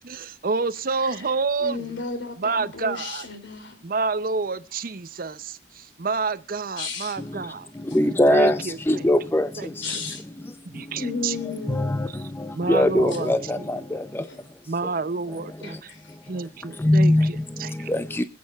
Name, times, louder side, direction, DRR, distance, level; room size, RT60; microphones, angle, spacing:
voice 1, 0.0-1.9 2.4-3.3 3.8-7.7 8.3-9.0 9.6-10.0 10.6-11.4 12.5-13.7 14.7-15.9 16.3-17.9, right 4 dB, 50° right, 0.6 m, -29 dB
voice 2, 1.0-1.3 1.6-3.8 6.8-7.2 7.9-8.0 9.8-10.2 10.9-12.1 14.2-14.4 15.6-16.1, left 4 dB, 75° left, 2.9 m, -34 dB
voice 3, 7.9-8.6 8.9-9.5 11.7-11.9 12.7-13.6 16.9-17.3 17.9-18.2, left 1 dB, 10° left, 0.5 m, -19 dB
25.0 x 8.5 x 2.4 m
head